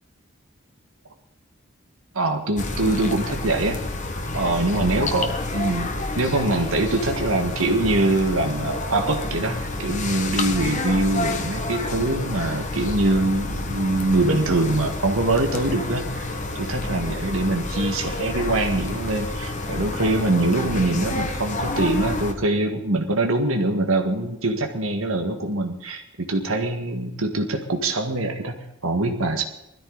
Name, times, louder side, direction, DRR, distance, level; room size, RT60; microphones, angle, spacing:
voice 1, 2.1-3.8 4.3-29.4, right 2 dB, 80° right, 4 dB, 1.8 m, -23 dB
sound 1, 2.6-22.3, left 2 dB, 35° left, 1.5 m, -29 dB
20.5 x 13.5 x 4.1 m, 0.83 s
head